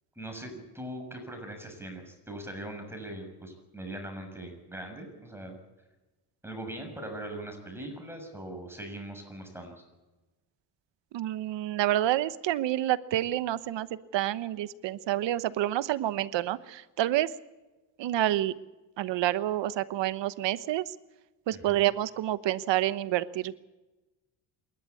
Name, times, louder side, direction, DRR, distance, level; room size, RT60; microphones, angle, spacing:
voice 1, 0.1-5.6 6.4-9.7 21.5-21.8, right 1 dB, 5° right, 4 dB, 6.7 m, -41 dB
voice 2, 11.1-13.9 14.1-17.3 18.0-18.5 19.0-20.8 21.5-23.6, right 13 dB, 75° right, 15 dB, 1.1 m, -28 dB
26.5 x 12.5 x 8.4 m, 1.1 s
cardioid pair, 90°, 44 cm